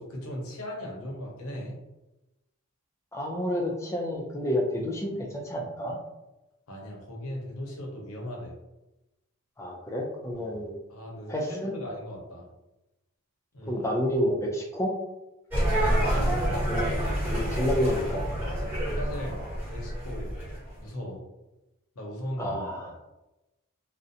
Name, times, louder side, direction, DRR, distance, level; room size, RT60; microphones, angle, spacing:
voice 1, 0.0-1.8 6.7-8.5 10.4-10.6 10.9-12.4 13.5-13.9 15.9-16.5 18.9-19.4 19.7-20.3 20.8-21.2 22.0-22.7, equal, 80° left, -1 dB, 0.7 m, -38 dB
voice 2, 3.1-6.0 9.6-10.8 11.3-11.7 13.7-14.9 16.7-16.9 17.2-18.2 22.4-22.9, equal, 15° left, -1 dB, 0.4 m, -29 dB
sound 1, 15.5-20.7, right 1 dB, 10° right, 1.0 m, -28 dB
2.4 x 2.0 x 2.6 m, 0.97 s
head